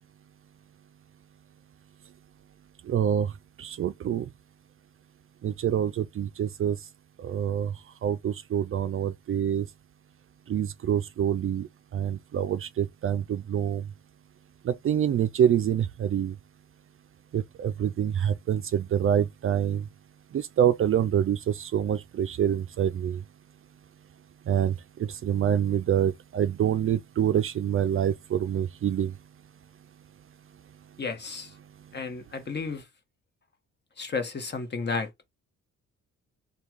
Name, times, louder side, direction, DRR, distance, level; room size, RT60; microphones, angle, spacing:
voice 1, 2.9-3.3 3.6-4.2 5.4-6.8 7.2-7.7 8.0-9.6 10.5-11.7 11.9-13.8 14.7-16.3 17.3-19.8 20.6-23.2 24.5-24.7 25.2-29.1, right 9 dB, 45° right, 0.5 m, -26 dB
voice 2, 31.0-31.5 31.9-32.9 34.0-35.1, left 4 dB, 35° left, 1.2 m, -32 dB
3.4 x 2.4 x 4.5 m
cardioid pair, 90°, 30 cm